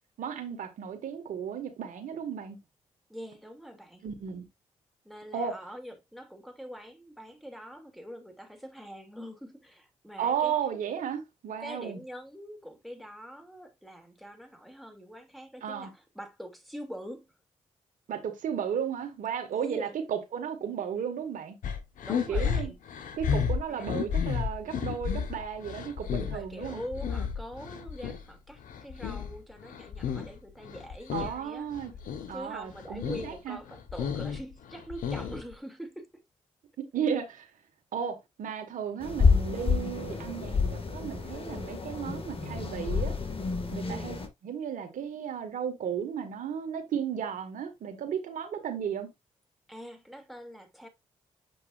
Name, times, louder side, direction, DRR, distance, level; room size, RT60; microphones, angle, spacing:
voice 1, 0.2-2.6 4.0-4.5 5.3-5.5 10.2-12.0 15.6-15.9 18.1-21.6 22.3-22.7 23.2-26.8 31.1-31.9 32.3-33.6 36.8-37.5 37.9-43.1 43.7-44.2 44.4-49.1, right 8 dB, 75° right, 2.1 m, -34 dB
voice 2, 3.1-4.0 5.0-10.5 11.6-17.3 19.5-19.9 22.0-22.8 23.7-23.9 26.1-31.7 32.3-36.2 43.8-44.1 49.7-50.9, equal, ahead, 2.9 m, -44 dB
sound 1, 21.6-28.2 28.6-30.4 30.6-31.4 31.7-32.3 32.7-33.3 33.7-35.5, left 7 dB, 75° left, 1.3 m, -32 dB
sound 2, 39.0-44.3, left 5 dB, 45° left, 2.2 m, -29 dB
8.0 x 5.4 x 2.6 m
supercardioid pair, 45°, 14 cm